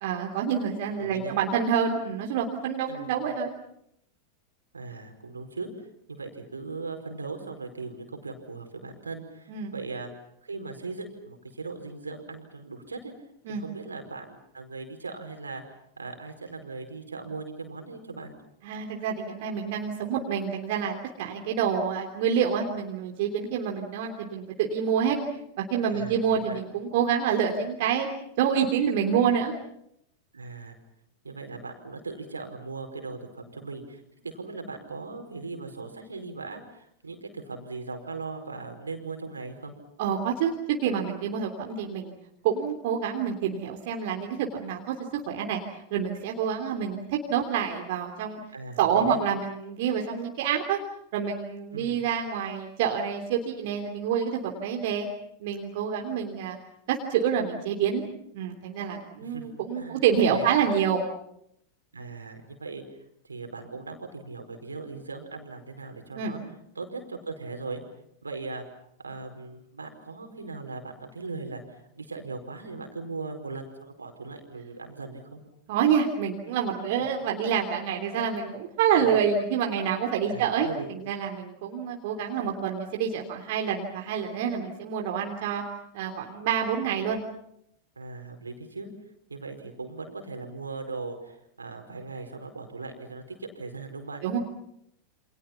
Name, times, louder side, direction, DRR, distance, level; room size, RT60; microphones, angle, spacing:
voice 1, 0.0-3.5 9.5-9.7 13.5-13.6 18.6-25.2 25.6-28.1 28.4-29.5 40.0-42.1 42.4-45.6 45.9-48.4 48.8-50.8 51.1-55.1 55.4-56.6 56.9-58.0 58.3-61.0 66.1-66.3 75.7-85.6 85.9-87.2 94.2-94.4, right 7 dB, 50° right, 2 dB, 3.1 m, -27 dB
voice 2, 0.9-1.4 2.9-3.1 4.7-10.1 10.4-13.1 13.5-15.6 16.0-18.3 25.9-26.6 30.3-30.8 31.2-39.7 48.5-49.2 51.7-52.0 59.2-59.5 59.7-60.5 61.9-62.8 63.2-66.4 66.7-67.8 68.2-68.6 69.0-75.4 79.0-79.2 80.2-80.9 88.0-88.9 89.3-94.2, right 3 dB, 75° right, 5 dB, 4.8 m, -39 dB
29.0 x 27.0 x 5.9 m, 0.75 s
figure-of-eight pair, 90°, 0 cm